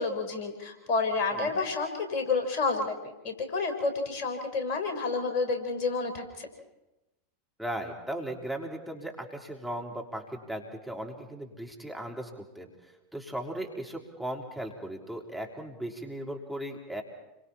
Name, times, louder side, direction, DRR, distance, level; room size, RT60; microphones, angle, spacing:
voice 1, 0.0-6.5, left 4 dB, 55° left, 5 dB, 4.2 m, -30 dB
voice 2, 7.6-12.7 13.1-17.0, right 1 dB, ahead, 0 dB, 3.6 m, -37 dB
29.5 x 24.0 x 4.3 m, 0.99 s
figure-of-eight pair, 90°, 0 cm